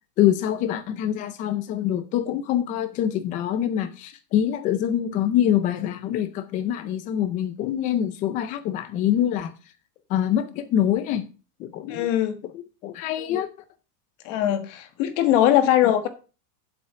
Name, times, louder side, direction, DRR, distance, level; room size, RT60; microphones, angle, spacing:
voice 1, 0.2-9.5 10.1-11.2 11.6-12.1 12.5-13.5, left 10 dB, 15° left, 0.4 m, -25 dB
voice 2, 11.9-12.4 14.2-16.1, left 11 dB, 50° left, 1.5 m, -21 dB
8.5 x 7.8 x 5.6 m
supercardioid pair, 165°, 49 cm